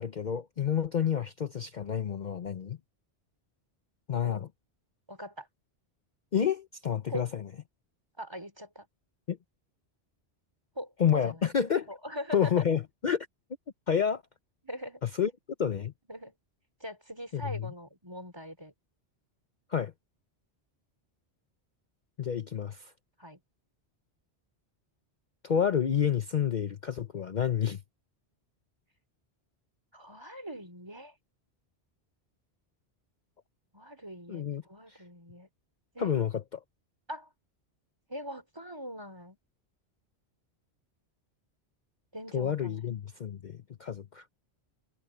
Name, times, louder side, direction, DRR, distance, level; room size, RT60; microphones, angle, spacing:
voice 1, 0.0-2.8 4.1-4.5 6.3-7.4 9.3-9.4 11.0-11.9 12.3-13.3 13.9-14.2 15.0-15.3 15.6-15.9 17.3-17.7 19.7-19.9 22.2-22.9 25.4-27.8 34.3-34.6 34.9-35.0 36.0-36.6 42.3-44.3, left 8 dB, 50° left, 0.8 m, -29 dB
voice 2, 5.1-5.5 7.1-7.3 8.2-8.9 10.8-11.6 11.9-12.6 14.6-15.0 16.1-16.3 16.8-18.7 23.2-23.4 29.9-31.2 33.7-35.5 35.9-36.1 37.1-37.3 38.1-39.4 42.1-42.8, equal, 25° right, 3.5 m, -42 dB
omnidirectional pair, 1.1 m